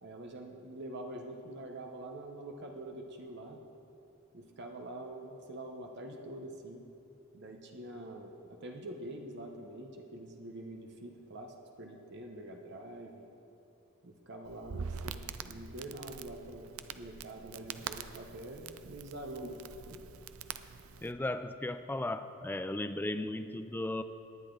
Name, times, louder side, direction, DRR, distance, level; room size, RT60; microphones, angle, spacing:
voice 1, 0.0-3.6 4.3-6.9 7.3-13.3 14.0-19.6 19.9-20.0, right 1 dB, 55° right, 3 dB, 0.9 m, -45 dB
Crackle, 14.5-21.1, right 6 dB, 80° right, 0.5 m, -44 dB
voice 2, 21.0-24.0, left 1 dB, 10° left, 10 dB, 0.3 m, -36 dB
19.0 x 9.9 x 3.9 m, 2.7 s
head